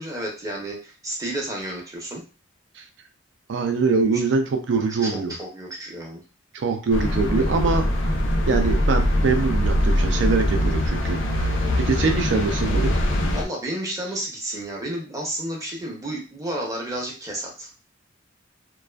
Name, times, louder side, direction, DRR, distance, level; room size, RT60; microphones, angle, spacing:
voice 1, 0.0-2.2 4.9-6.2 13.3-17.7, right 1 dB, 15° right, -2 dB, 0.6 m, -31 dB
voice 2, 3.5-5.3 6.5-8.1 8.5-12.9, right 4 dB, 60° right, 5 dB, 0.4 m, -23 dB
sound 1, 6.9-13.4, left 1 dB, 65° left, 0.5 m, -22 dB
2.4 x 2.3 x 2.2 m, 0.35 s
head